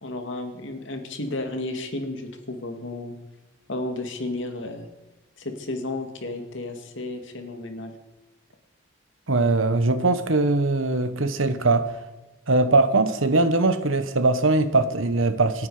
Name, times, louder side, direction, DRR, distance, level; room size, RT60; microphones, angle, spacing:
voice 1, 0.0-3.1 3.7-4.9 5.4-7.9, left 2 dB, 65° left, 2.3 m, -32 dB
voice 2, 9.3-11.9 12.5-15.7, right 3 dB, 80° right, 1.2 m, -21 dB
27.5 x 9.8 x 5.0 m
head